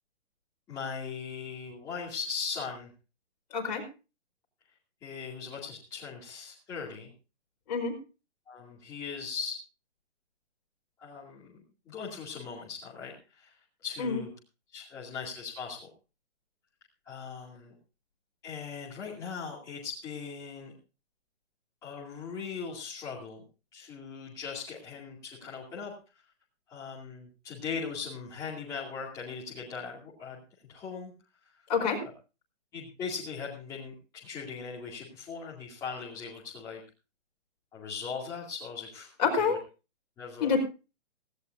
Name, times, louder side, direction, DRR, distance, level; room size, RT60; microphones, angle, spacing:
voice 1, 0.7-2.9 5.0-7.1 8.5-9.6 11.0-14.3 14.7-15.9 17.0-17.7 18.4-20.7 21.8-23.4 23.7-26.2 26.7-30.4 30.7-31.1 31.4-31.7 32.7-36.8 37.7-39.6 40.2-40.6, left 5 dB, 10° left, -7 dB, 2.4 m, -39 dB
voice 2, 3.5-3.8 7.7-8.0 14.0-14.2 31.7-32.0 39.2-39.6 40.4-40.6, left 5 dB, 35° left, 1 dB, 5.0 m, -27 dB
18.0 x 16.5 x 2.6 m, 0.32 s
hypercardioid pair, 170°, 35 cm